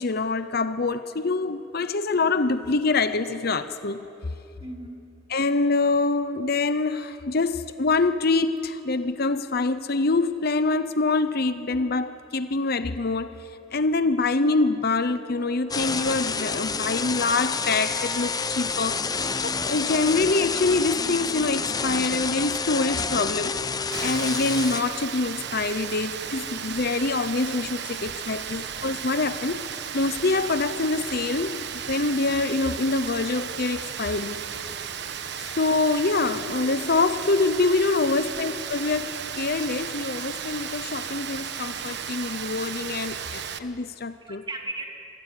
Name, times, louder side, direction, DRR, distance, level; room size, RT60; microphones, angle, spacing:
voice 1, 0.0-4.0 5.3-23.8 24.0-34.4 35.5-44.4, left 3 dB, 55° left, 0.8 m, -25 dB
voice 2, 4.6-5.1 44.2-44.8, right 2 dB, 25° right, 2.8 m, -38 dB
sound 1, 15.7-24.8, left 5 dB, 20° left, 0.7 m, -28 dB
Rain, 23.9-43.6, right 8 dB, 60° right, 1.1 m, -34 dB
26.5 x 19.0 x 10.0 m
head